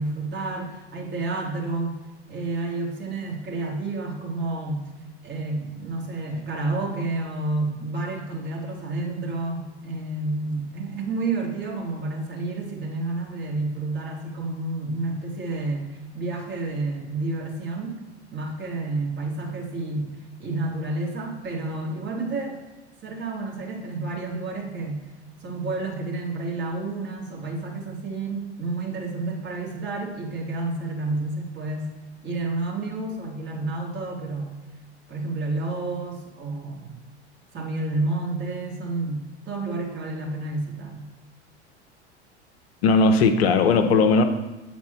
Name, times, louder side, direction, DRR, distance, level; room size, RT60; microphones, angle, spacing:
voice 1, 0.0-2.0 2.3-4.9 5.2-18.0 18.3-22.6 23.0-25.1 25.4-31.9 32.2-34.5 35.1-37.0 37.5-41.1, right 2 dB, 30° right, -2 dB, 2.2 m, -30 dB
voice 2, 42.8-44.2, left 4 dB, 60° left, 6 dB, 0.8 m, -18 dB
8.4 x 4.5 x 4.3 m, 1.1 s
figure-of-eight pair, 80°, 34 cm